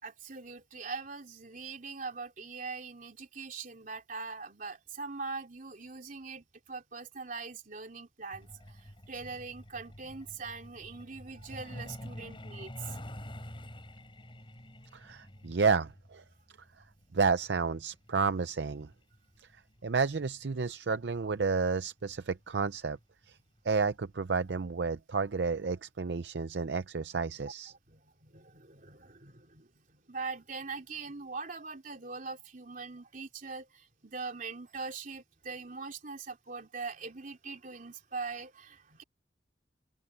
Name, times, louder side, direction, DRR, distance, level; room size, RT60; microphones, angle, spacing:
voice 1, 0.0-8.8 9.1-13.0 27.7-29.7 30.1-39.0, right 4 dB, 50° right, 3.1 m, -42 dB
Truck, 8.3-20.6 21.8-22.0 22.4-22.6 23.0-23.2 23.6-23.7 24.1-24.2, equal, 30° left, 6.2 m, -48 dB
voice 2, 14.9-16.2 17.1-18.9 19.8-23.0 23.6-27.7, right 5 dB, 75° right, 0.6 m, -31 dB
open air
head